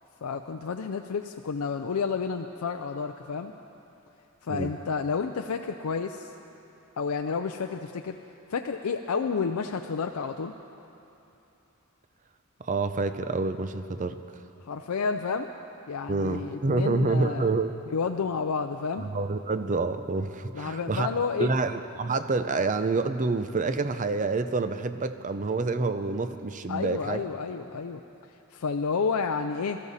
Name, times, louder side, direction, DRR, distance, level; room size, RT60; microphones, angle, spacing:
voice 1, 0.2-3.5 4.4-6.3 7.0-8.2 8.5-10.5 14.6-15.5 15.9-17.5 17.9-19.1 20.5-21.5 26.7-28.0 28.5-29.8, left 5 dB, 85° left, 5 dB, 0.5 m, -30 dB
voice 2, 12.6-14.2 16.1-17.7 19.0-27.2, right 3 dB, 35° right, 10 dB, 0.5 m, -28 dB
20.5 x 14.0 x 4.1 m, 2.8 s
head